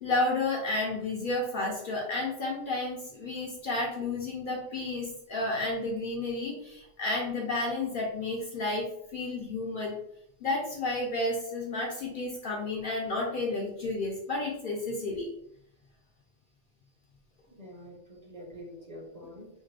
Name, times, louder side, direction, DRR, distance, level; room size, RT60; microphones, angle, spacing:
voice 1, 0.0-10.0 10.4-15.3, left 2 dB, 55° left, -2 dB, 0.6 m, -31 dB
voice 2, 17.5-19.5, equal, 40° right, -3 dB, 0.8 m, -46 dB
3.2 x 2.1 x 3.3 m, 0.75 s
omnidirectional pair, 1.2 m